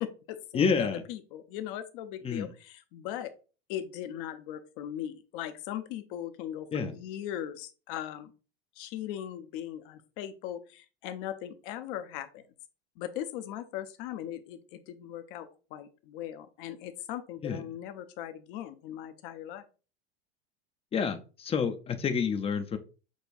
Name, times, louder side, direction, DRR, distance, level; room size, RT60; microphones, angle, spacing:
voice 1, 0.0-3.3 3.7-8.3 8.8-12.4 13.0-19.6, left 11 dB, 55° left, 9 dB, 0.7 m, -39 dB
voice 2, 0.5-1.0 2.2-2.5 6.7-6.9 17.4-17.6 20.9-22.8, left 6 dB, 20° left, 8 dB, 0.5 m, -28 dB
6.3 x 2.3 x 2.5 m, 0.35 s
hypercardioid pair, 90°, 31 cm